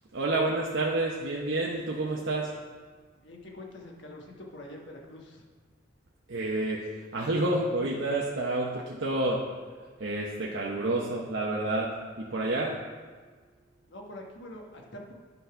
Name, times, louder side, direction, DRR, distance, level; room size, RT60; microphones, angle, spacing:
voice 1, 0.1-2.5 6.3-9.4 10.0-12.8, right 2 dB, 70° right, -3 dB, 0.8 m, -29 dB
voice 2, 3.2-5.4 13.9-15.1, left 1 dB, 65° left, 0 dB, 1.3 m, -45 dB
10.5 x 4.1 x 5.7 m, 1.5 s
head